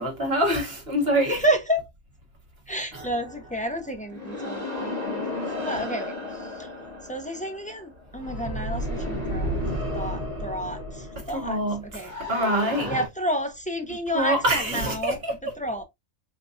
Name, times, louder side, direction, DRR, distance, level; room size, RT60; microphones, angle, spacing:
voice 1, 0.0-1.4 11.3-12.9 14.1-15.3, right 1 dB, 45° right, 1.7 m, -25 dB
voice 2, 1.3-1.8 2.7-6.7 7.1-9.5 9.9-12.1 12.9-15.2 15.6-15.8, equal, 10° left, 0.5 m, -30 dB
sound 1, 2.9-13.1, left 1 dB, 30° right, 1.5 m, -33 dB
4.1 x 3.4 x 2.6 m
omnidirectional pair, 1.5 m